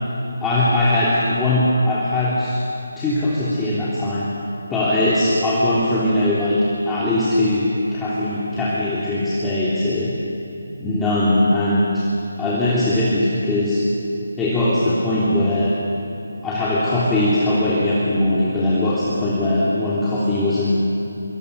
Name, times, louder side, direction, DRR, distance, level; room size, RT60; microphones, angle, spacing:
voice 1, 0.4-2.6 3.0-4.3 4.7-6.6 6.9-10.1 10.8-12.0 12.4-13.8 14.4-15.7 16.4-20.8, left 1 dB, 10° left, -9 dB, 3.2 m, -20 dB
25.0 x 24.5 x 6.9 m, 2.9 s
figure-of-eight pair, 155°, 0 cm